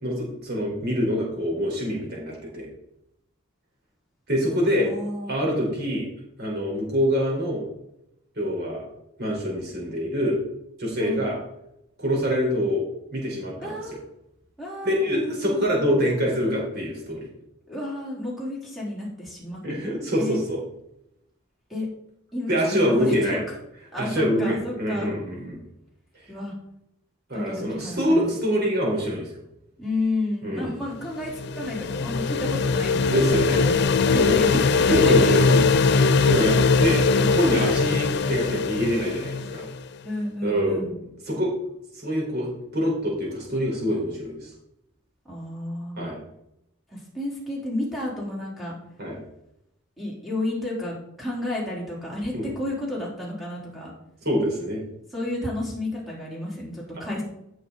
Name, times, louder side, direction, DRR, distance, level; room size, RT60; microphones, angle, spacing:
voice 1, 0.0-2.6 4.3-4.9 5.3-6.1 6.4-7.6 8.4-8.8 9.2-10.4 10.8-11.4 12.0-12.8 13.1-13.7 14.8-17.2 19.6-20.6 22.5-23.4 24.0-25.6 27.3-29.3 30.4-30.8 33.0-33.7 34.1-34.4 34.9-35.6 36.2-39.7 40.4-40.8 41.3-41.5 42.0-44.5 46.0-46.2 49.0-49.2 52.3-52.5 54.2-54.8, equal, 50° right, -2 dB, 4.7 m, -25 dB
voice 2, 4.8-5.7 11.0-11.3 13.6-14.1 14.6-15.6 17.7-19.6 20.2-20.4 21.7-21.9 22.3-23.4 23.9-25.1 26.3-26.5 27.3-28.3 29.8-33.0 33.6-33.8 34.0-35.3 40.0-41.0 45.2-46.1 46.9-48.7 50.0-53.9 55.1-57.2, left 1 dB, ahead, -6 dB, 3.9 m, -31 dB
sound 1, 31.0-39.8, left 4 dB, 50° left, 0.4 m, -21 dB
15.0 x 6.5 x 4.1 m, 0.81 s
head